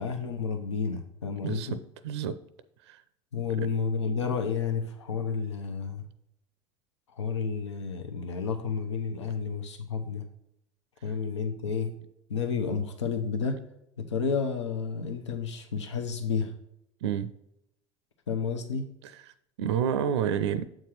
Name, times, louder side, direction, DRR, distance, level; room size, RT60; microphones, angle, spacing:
voice 1, 0.0-1.8 3.3-6.0 7.1-10.3 11.0-11.9 12.3-13.6 14.0-16.5 18.3-18.9, left 5 dB, 80° left, 6 dB, 0.7 m, -31 dB
voice 2, 2.0-2.4 2.9-3.0 3.6-3.7 17.0-17.3 19.6-20.7, right 8 dB, 70° right, 14 dB, 0.5 m, -28 dB
7.6 x 4.6 x 4.2 m, 0.80 s
figure-of-eight pair, 70°, 15 cm